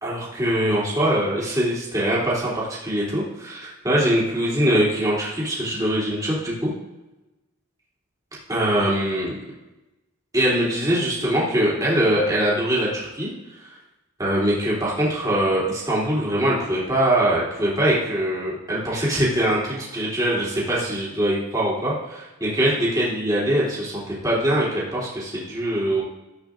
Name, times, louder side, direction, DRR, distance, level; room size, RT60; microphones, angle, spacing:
voice 1, 0.0-6.7 8.5-9.4 10.3-13.3 13.6-13.7 14.2-26.0, right 1 dB, 15° right, -7 dB, 3.1 m, -22 dB
13.5 x 8.4 x 2.5 m, 1.0 s
head